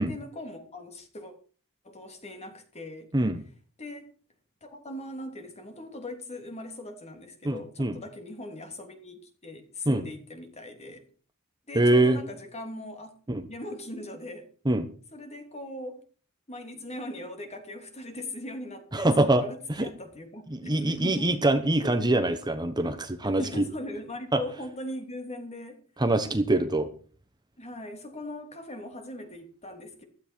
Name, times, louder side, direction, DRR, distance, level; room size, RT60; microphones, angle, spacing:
voice 1, 0.0-1.3 1.8-3.1 3.8-4.1 4.6-11.1 11.7-13.1 13.5-14.5 15.1-16.0 16.5-21.3 23.4-25.8 27.6-30.0, left 1 dB, 30° left, 3.0 m, -40 dB
voice 2, 7.4-8.0 9.9-10.0 11.7-12.2 13.3-13.4 14.6-14.9 18.9-19.4 19.7-19.9 20.5-23.6 24.3-24.4 26.0-26.9, right 1 dB, 20° right, 1.1 m, -24 dB
15.5 x 13.0 x 4.6 m
head